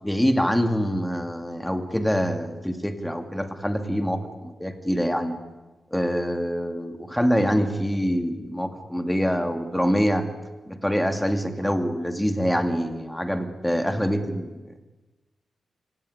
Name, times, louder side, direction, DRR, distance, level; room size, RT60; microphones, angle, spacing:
voice 1, 0.0-5.4 5.9-10.3 10.7-14.6, equal, 5° left, 7 dB, 2.3 m, -25 dB
24.0 x 17.5 x 10.0 m, 1.2 s
wide cardioid pair, 120°, 0 cm